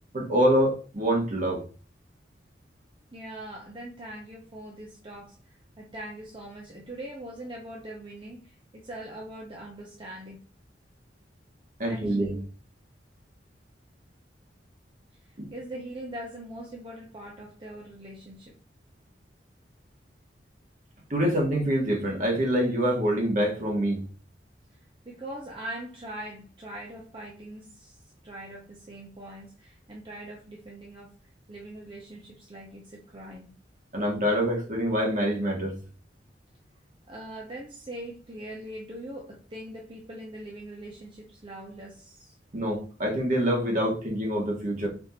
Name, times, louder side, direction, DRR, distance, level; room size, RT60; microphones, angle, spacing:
voice 1, 0.1-1.7 11.8-12.4 15.4-15.5 21.1-24.0 33.9-35.8 42.5-44.9, equal, 45° right, 1.5 m, -25 dB
voice 2, 3.1-10.4 11.9-12.3 15.2-18.5 25.0-31.1 31.5-33.5 37.1-42.3, right 1 dB, 30° right, 0.8 m, -42 dB
4.4 x 2.8 x 4.2 m
head